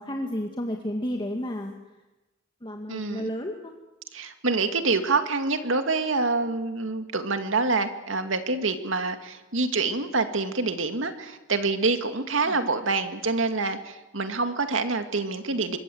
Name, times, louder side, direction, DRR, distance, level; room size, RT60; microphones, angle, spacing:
voice 1, 0.0-1.7 2.6-3.7 12.4-12.5, equal, 25° left, 2 dB, 2.0 m, -32 dB
voice 2, 2.9-3.3 4.1-15.8, right 3 dB, 85° right, 7 dB, 2.2 m, -26 dB
25.5 x 22.0 x 7.9 m, 1.1 s
head